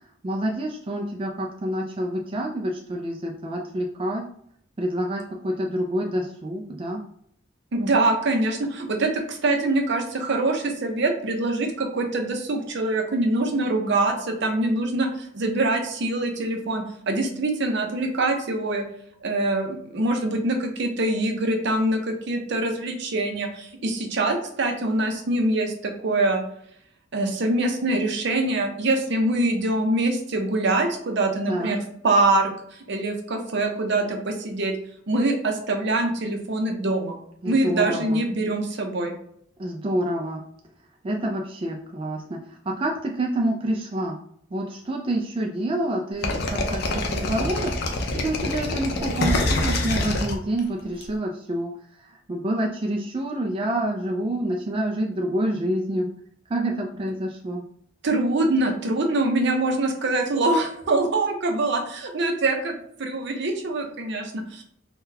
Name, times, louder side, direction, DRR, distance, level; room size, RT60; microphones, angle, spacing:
voice 1, 0.2-4.3 4.8-7.0 31.5-31.8 37.4-38.2 39.6-40.4 41.0-42.4 42.7-44.2 44.5-47.7 48.1-51.7 52.3-56.1 56.5-57.6, right 1 dB, 30° right, 0 dB, 0.3 m, -27 dB
voice 2, 7.7-18.8 19.2-26.4 27.1-32.5 32.9-34.7 35.1-37.2 37.4-39.1 58.0-64.6, right 2 dB, 65° right, 4 dB, 0.6 m, -24 dB
sound 1, 46.2-51.0, left 2 dB, 60° left, 0.6 m, -25 dB
3.7 x 2.2 x 2.7 m, 0.69 s
head